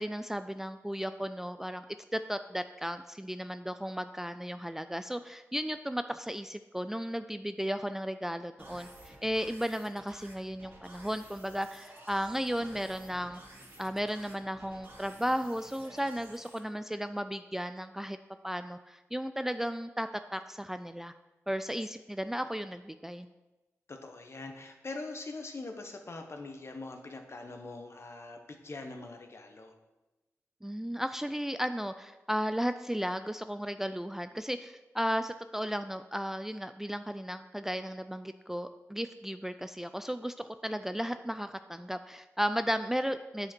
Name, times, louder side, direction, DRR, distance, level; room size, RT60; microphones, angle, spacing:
voice 1, 0.0-1.8 2.1-13.4 13.8-18.2 18.4-21.1 21.5-23.3 30.6-43.5, equal, 5° right, 10 dB, 0.3 m, -35 dB
sound 1, 8.6-16.6, right 1 dB, 45° right, 2.5 m, -53 dB
voice 2, 23.9-29.7, left 3 dB, 50° left, 5 dB, 1.1 m, -43 dB
8.5 x 5.1 x 4.4 m, 1.1 s
cardioid pair, 65°, 6 cm